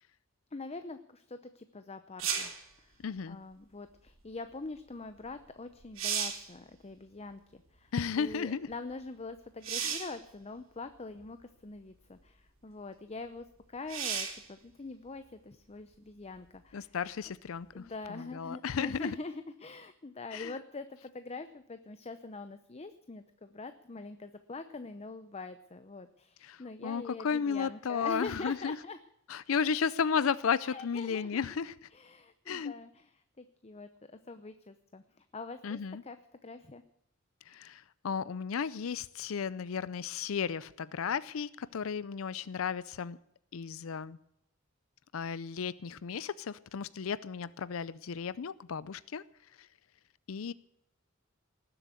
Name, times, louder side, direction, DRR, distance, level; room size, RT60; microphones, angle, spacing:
voice 1, 0.5-2.5 2.8-2.9 3.3-7.9 8.2-16.8 17.7-29.0 30.6-31.4 31.9-33.0 33.4-35.0 35.3-35.8 36.1-36.2 36.4-36.8, left 3 dB, 30° left, 10 dB, 0.7 m, -44 dB
sound 1, 2.2-2.6 5.3-5.4 5.8-6.5 9.6-10.2 11.2-11.3 13.9-14.5 18.0-18.1, right 7 dB, 70° right, 3.1 m, -34 dB
voice 2, 3.0-3.4 7.9-8.7 9.8-10.0 16.7-19.2 20.3-20.6 26.4-28.8 29.3-31.9 32.5-32.7 35.6-36.0 37.5-43.2 43.5-44.2 45.1-49.2 49.6-49.7 50.3-50.5, left 6 dB, 85° left, 18 dB, 0.5 m, -34 dB
19.0 x 7.9 x 8.3 m, 0.78 s
head